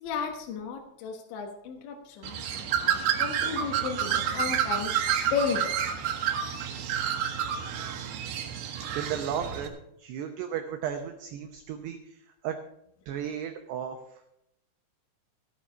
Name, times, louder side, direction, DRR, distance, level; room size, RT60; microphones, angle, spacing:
voice 1, 0.0-4.9 5.3-5.8, left 6 dB, 70° left, 2 dB, 3.2 m, -34 dB
Bird, 2.2-9.7, right 9 dB, 65° right, 2.5 m, -29 dB
voice 2, 9.0-12.6 13.1-14.2, right 8 dB, 85° right, 6 dB, 2.4 m, -35 dB
15.0 x 9.0 x 5.5 m, 0.81 s
omnidirectional pair, 6.0 m